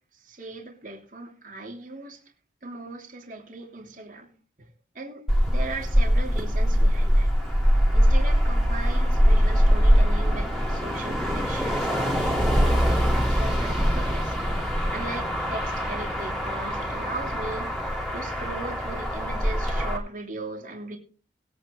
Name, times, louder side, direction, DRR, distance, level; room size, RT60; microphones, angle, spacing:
voice 1, 0.2-2.2 2.6-4.3 4.6-4.7 4.9-7.3 7.9-14.3 14.9-17.7 18.1-21.0, right 3 dB, 45° right, 2.9 m, -38 dB
Motor vehicle (road), 5.3-20.0, equal, ahead, 3.2 m, -23 dB
21.0 x 9.1 x 3.1 m
head